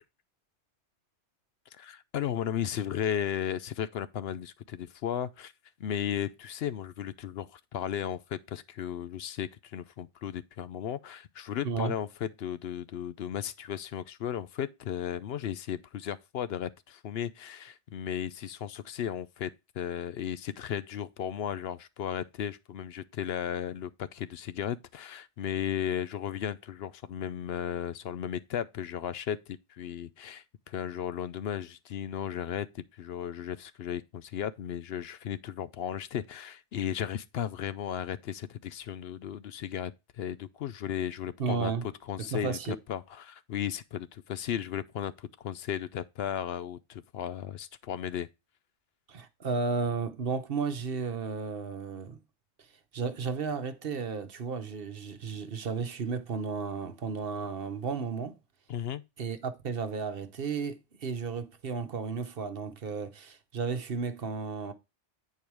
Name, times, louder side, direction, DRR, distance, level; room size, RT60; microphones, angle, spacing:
voice 1, 1.8-5.5 5.8-41.7 42.1-42.6 42.9-48.3 58.7-59.0, left 9 dB, 70° left, 0.8 m, -35 dB
voice 2, 11.6-11.9 41.4-41.9 42.2-42.7 49.1-52.2 52.9-58.4 59.2-64.7, right 5 dB, 55° right, 1.1 m, -33 dB
8.7 x 4.7 x 4.6 m
omnidirectional pair, 1.1 m